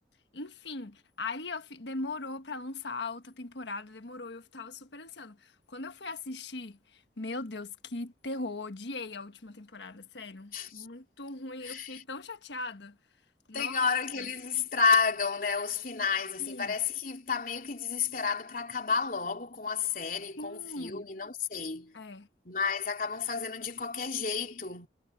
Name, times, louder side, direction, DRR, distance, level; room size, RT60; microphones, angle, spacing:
voice 1, 0.3-13.0 13.5-13.8 14.2-14.3 16.4-16.7 20.4-21.1 21.9-22.3, left 3 dB, 80° left, 1.4 m, -40 dB
voice 2, 10.5-10.9 11.6-12.0 13.5-21.9 22.4-24.9, left 5 dB, 50° left, 3.4 m, -31 dB
head